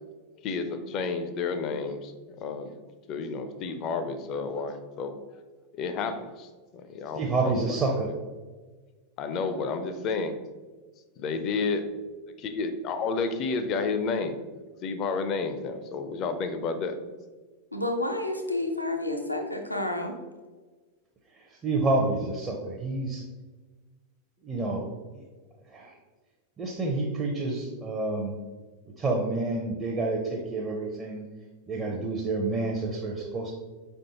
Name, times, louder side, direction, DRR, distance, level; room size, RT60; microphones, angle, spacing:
voice 1, 0.4-2.1 2.4-2.7 3.1-5.1 5.8-6.5 6.9-7.5 9.2-10.4 11.2-11.8 12.6-14.4 14.8-17.0, left 4 dB, 35° left, 9 dB, 0.4 m, -30 dB
voice 2, 7.1-8.1 21.3-23.2 24.4-24.9 25.1-25.2 25.7-25.9 26.6-28.4 29.0-31.3 31.7-33.5, right 3 dB, 20° right, -1 dB, 0.6 m, -29 dB
voice 3, 17.7-20.1, left 2 dB, 90° left, 3 dB, 0.5 m, -30 dB
5.0 x 3.5 x 2.8 m, 1.3 s
figure-of-eight pair, 90°, 0 cm